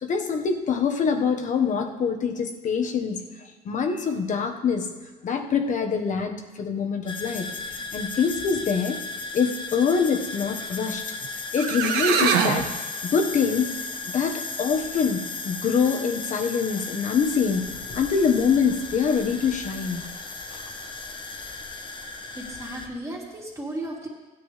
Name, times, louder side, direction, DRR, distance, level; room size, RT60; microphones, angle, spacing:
voice 1, 0.0-3.2 3.6-4.9 5.2-9.0 9.3-11.0 11.3-13.7 14.0-20.0, left 6 dB, 50° left, 4 dB, 1.3 m, -25 dB
sound 1, 7.1-22.9, left 3 dB, 30° left, 1.0 m, -35 dB
sound 2, 11.2-11.3 11.6-12.7, right 7 dB, 80° right, 1.1 m, -23 dB
voice 2, 22.3-24.1, right 1 dB, 20° right, -3 dB, 3.0 m, -35 dB
16.0 x 9.6 x 3.3 m, 1.2 s
cardioid pair, 110°, 17 cm